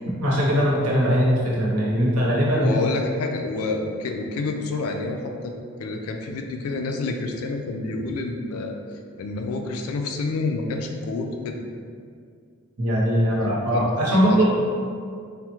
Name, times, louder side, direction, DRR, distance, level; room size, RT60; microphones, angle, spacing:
voice 1, 0.2-2.8 12.8-14.4, equal, 90° right, -5 dB, 0.8 m, -20 dB
voice 2, 2.5-5.5 5.8-8.8 9.2-11.6 13.2-14.4, left 3 dB, 75° left, 3 dB, 0.3 m, -28 dB
3.5 x 2.1 x 3.0 m, 2.2 s
head